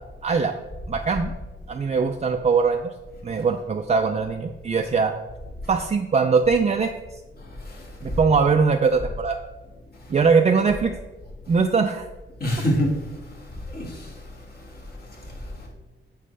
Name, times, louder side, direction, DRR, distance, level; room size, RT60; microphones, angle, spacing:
voice 1, 0.2-0.6 0.9-1.3 1.7-2.9 3.2-5.1 5.7-6.9 8.0-9.4 10.1-11.0 11.5-12.1, right 5 dB, 35° right, 4 dB, 0.4 m, -21 dB
voice 2, 7.6-8.2 12.4-13.1 13.7-14.2 14.5-14.6 15.2-15.3, equal, 50° left, -3 dB, 2.3 m, -26 dB
9.0 x 6.6 x 3.3 m, 1.2 s
wide cardioid pair, 150°, 21 cm